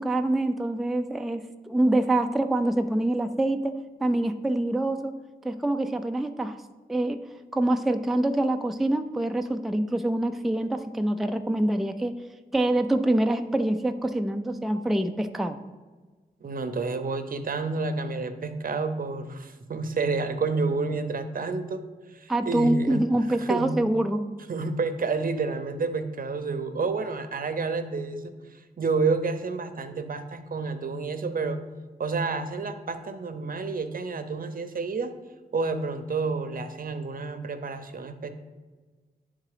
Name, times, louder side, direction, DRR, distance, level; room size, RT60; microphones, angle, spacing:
voice 1, 0.0-3.7 4.0-5.1 5.4-6.6 6.9-7.2 7.5-12.1 12.5-15.6 22.3-24.2, right 1 dB, ahead, 6 dB, 0.4 m, -25 dB
voice 2, 16.4-21.8 22.1-23.0 23.4-23.8 24.5-28.3 28.8-31.6 32.0-35.1 35.5-38.3, right 4 dB, 60° right, 9 dB, 0.7 m, -29 dB
11.0 x 3.7 x 4.9 m, 1.4 s
wide cardioid pair, 120°, 17 cm